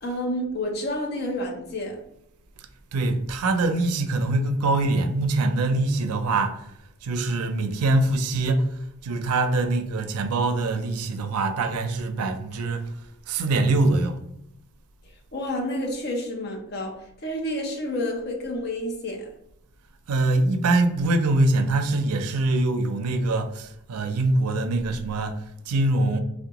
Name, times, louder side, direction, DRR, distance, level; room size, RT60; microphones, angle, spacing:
voice 1, 0.0-2.0 15.3-19.3, left 1 dB, 45° left, 0.6 m, -29 dB
voice 2, 2.9-6.6 7.0-8.7 9.0-12.9 13.3-14.2 20.1-26.2, right 2 dB, 85° right, 0.4 m, -23 dB
3.5 x 2.1 x 2.8 m
head